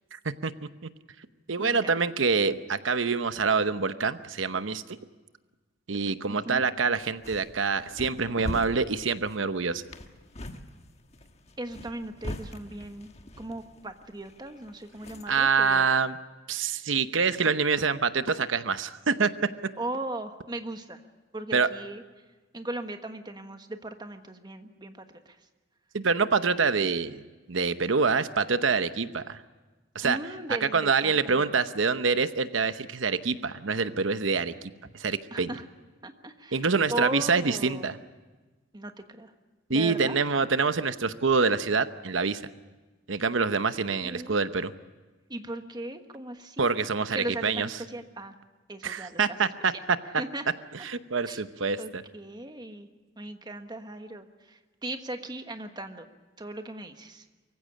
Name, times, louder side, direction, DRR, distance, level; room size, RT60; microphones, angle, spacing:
voice 1, 0.1-0.5 1.5-4.8 5.9-9.8 15.3-16.2 16.5-19.3 21.5-21.7 25.9-27.2 27.5-29.4 29.9-30.2 30.5-34.5 34.9-35.5 36.5-38.0 39.7-42.4 43.1-44.7 46.6-47.7 48.8-49.7 50.7-52.0, right 5 dB, 80° right, 12 dB, 0.9 m, -26 dB
voice 2, 1.6-1.9 6.3-6.6 11.6-13.1 13.4-15.9 19.8-21.0 21.3-22.0 22.5-25.4 30.0-31.5 35.3-35.6 36.0-37.9 38.7-39.3 39.7-40.2 43.9-44.5 45.3-46.8 47.1-48.3 48.7-49.4 50.2-50.4 51.3-51.4 51.8-52.9 53.2-56.1 56.4-57.2, right 1 dB, 20° right, 7 dB, 1.4 m, -38 dB
sound 1, 7.0-15.5, left 1 dB, 35° left, 1.3 m, -42 dB
24.0 x 16.0 x 9.9 m, 1.3 s
head